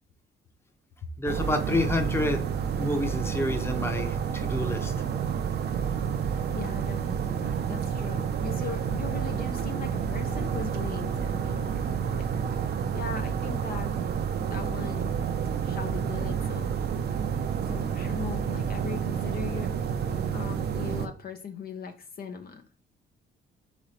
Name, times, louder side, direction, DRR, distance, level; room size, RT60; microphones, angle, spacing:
voice 1, 1.2-2.4 2.8-4.9, left 1 dB, 10° left, 5 dB, 0.8 m, -28 dB
sound 1, 1.3-21.1, right 7 dB, 55° right, 0.6 m, -29 dB
voice 2, 6.5-12.3 12.9-14.0 14.5-15.2 15.6-16.8 17.7-19.7 20.1-22.8, left 6 dB, 50° left, 5 dB, 0.6 m, -39 dB
3.9 x 3.1 x 4.3 m, 0.38 s
cardioid pair, 90°, 20 cm